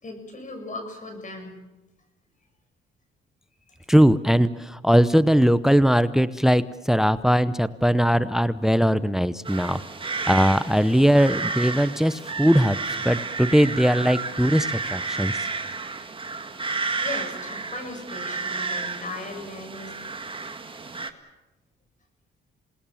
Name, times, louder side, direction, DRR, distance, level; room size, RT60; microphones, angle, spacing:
voice 1, 0.0-1.6 3.7-3.9 17.0-19.9, left 2 dB, 40° left, 5 dB, 7.0 m, -37 dB
voice 2, 3.9-9.8 10.3-12.8 13.0-15.3, equal, ahead, 15 dB, 0.8 m, -20 dB
sound 1, 9.4-21.1, right 4 dB, 25° right, 1.9 m, -31 dB
28.0 x 19.5 x 7.2 m, 1.1 s
cardioid pair, 90°, 20 cm